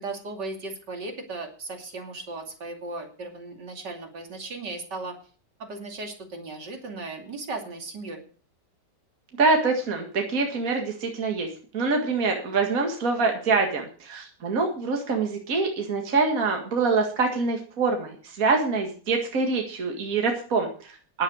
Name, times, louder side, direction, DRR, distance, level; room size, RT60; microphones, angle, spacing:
voice 1, 0.0-5.2 5.6-8.2, right 3 dB, 70° right, 3 dB, 3.2 m, -36 dB
voice 2, 9.4-11.5 11.7-21.2, right 4 dB, 50° right, 2 dB, 2.3 m, -25 dB
11.0 x 10.5 x 6.4 m, 0.40 s
omnidirectional pair, 1.9 m